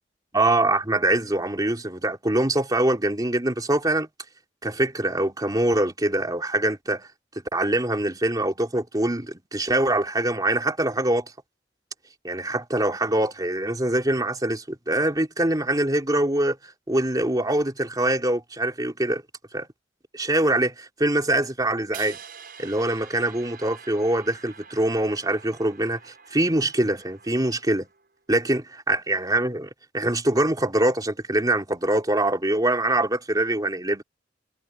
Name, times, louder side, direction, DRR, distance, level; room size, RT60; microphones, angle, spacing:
voice 1, 0.3-4.1 4.6-7.1 7.5-11.3 12.2-16.6 16.9-19.2 19.5-19.7 20.1-22.2 22.6-27.9 28.3-34.0, right 1 dB, 20° right, 3.3 m, -24 dB
sound 1, 21.9-28.1, right 7 dB, 55° right, 6.6 m, -46 dB
head